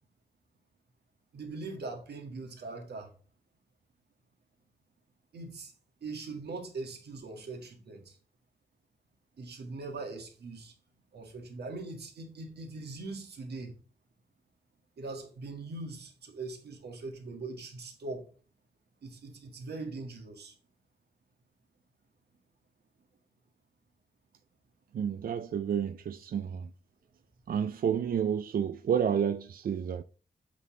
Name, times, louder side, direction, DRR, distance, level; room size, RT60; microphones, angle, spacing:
voice 1, 1.3-3.1 5.3-5.7 6.0-8.2 9.4-10.7 11.1-13.7 15.0-18.3 19.0-20.6, right 3 dB, 90° right, 1.7 m, -41 dB
voice 2, 24.9-26.7 27.5-30.0, right 8 dB, 60° right, 0.4 m, -30 dB
8.2 x 3.9 x 3.7 m
wide cardioid pair, 165°, 16 cm